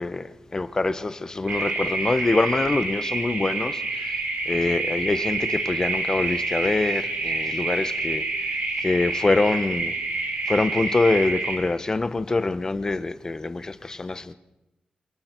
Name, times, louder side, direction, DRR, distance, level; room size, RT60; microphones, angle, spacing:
voice 1, 0.0-4.1 4.5-8.2 8.8-9.9 10.5-14.3, left 3 dB, 25° left, 0.9 m, -25 dB
sound 1, 1.5-11.5, right 3 dB, 70° right, 6.8 m, -28 dB
28.5 x 28.0 x 4.5 m
wide cardioid pair, 175°, 3 cm